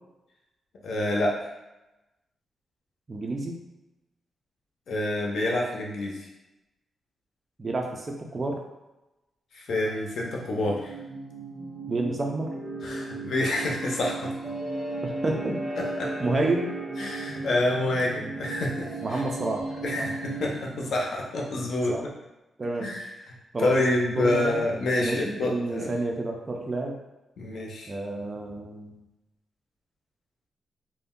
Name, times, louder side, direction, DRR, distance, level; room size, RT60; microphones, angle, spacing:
voice 1, 0.8-1.5 4.9-6.3 9.5-10.9 12.8-14.3 16.0-16.1 17.0-19.2 19.8-22.0 22.8-25.9 27.4-27.9, left 1 dB, 60° left, -2 dB, 0.6 m, -27 dB
voice 2, 3.1-3.6 7.6-8.6 11.9-12.5 15.0-15.6 16.2-16.7 19.0-19.6 20.0-20.1 21.9-22.1 22.6-22.9 23.5-23.7 24.1-24.6 25.0-26.9 27.9-29.0, right 2 dB, 25° right, 1 dB, 0.4 m, -29 dB
sound 1, 9.7-21.1, right 2 dB, 65° right, 0.6 m, -36 dB
2.5 x 2.1 x 3.5 m, 0.99 s
wide cardioid pair, 175°, 0 cm